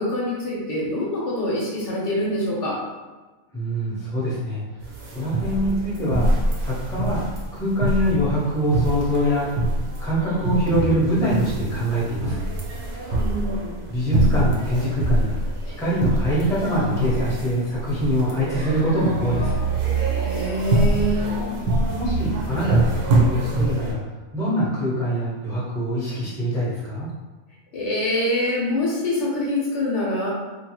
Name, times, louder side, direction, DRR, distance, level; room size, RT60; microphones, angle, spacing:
voice 1, 0.0-2.8 13.2-13.8 20.2-21.4 27.7-30.3, left 1 dB, 65° left, -4 dB, 0.9 m, -25 dB
voice 2, 3.5-4.6 5.1-6.3 6.6-7.2 7.5-9.5 10.0-12.5 13.9-15.4 15.8-19.6 22.0-24.0 24.3-27.1, equal, 5° left, -8 dB, 0.6 m, -24 dB
sound 1, 4.8-23.9, right 2 dB, 60° right, 0.7 m, -24 dB
2.7 x 2.3 x 2.9 m, 1.2 s
omnidirectional pair, 1.4 m